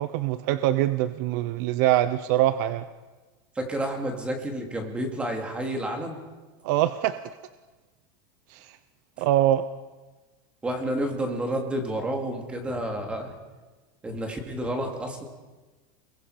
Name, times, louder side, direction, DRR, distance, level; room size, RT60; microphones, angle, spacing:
voice 1, 0.0-2.8 6.6-7.2 8.5-8.8 9.2-9.6, right 13 dB, 50° right, 12 dB, 0.8 m, -23 dB
voice 2, 3.5-6.2 10.6-13.3 14.0-15.2, right 1 dB, 10° right, 3 dB, 2.5 m, -30 dB
30.0 x 22.0 x 5.0 m, 1.3 s
supercardioid pair, 170°, 12 cm